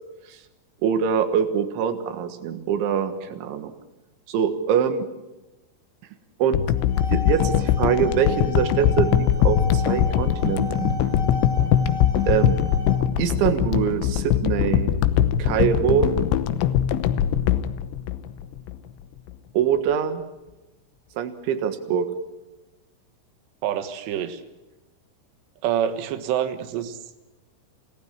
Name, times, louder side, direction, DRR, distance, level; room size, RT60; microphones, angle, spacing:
voice 1, 0.8-3.7 4.3-5.0 6.4-6.6 7.1-11.0 12.3-12.6 13.2-14.9 15.4-16.1 19.5-20.2 21.2-22.1, right 8 dB, 90° right, 9 dB, 3.9 m, -24 dB
sound 1, 6.5-18.8 19.3-19.4, left 10 dB, 80° left, 3.2 m, -22 dB
sound 2, 6.7-13.0, left 2 dB, 45° left, 6.4 m, -35 dB
voice 2, 23.6-24.4 25.6-27.0, right 10 dB, 75° right, 8 dB, 3.5 m, -26 dB
28.5 x 18.0 x 7.4 m, 1.0 s
omnidirectional pair, 5.3 m